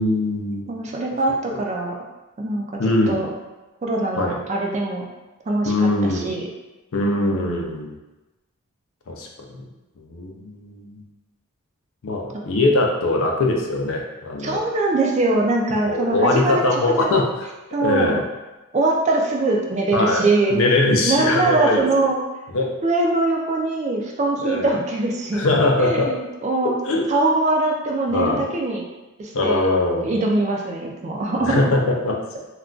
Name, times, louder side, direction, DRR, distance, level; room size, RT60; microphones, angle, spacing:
voice 1, 0.0-0.6 1.5-1.6 2.8-3.3 4.2-4.4 5.6-6.3 6.9-7.9 9.1-9.7 10.0-11.0 12.0-14.6 15.8-17.5 17.8-18.2 19.9-20.2 20.5-22.1 22.5-22.7 24.4-24.7 25.3-26.1 26.8-27.0 28.1-28.4 29.3-30.1 31.4-32.4, left 2 dB, 65° left, 1 dB, 0.5 m, -21 dB
voice 2, 0.7-2.0 2.4-2.7 3.1-3.3 3.8-5.1 5.5-5.7 6.0-6.4 7.0-7.8 14.4-16.5 17.0-17.2 17.7-18.2 18.7-20.6 21.0-22.2 22.8-25.5 25.9-26.8 27.1-28.8 29.2-29.7 30.0-31.6, right 2 dB, 30° right, 0 dB, 0.3 m, -22 dB
2.3 x 2.2 x 3.7 m, 1.1 s
head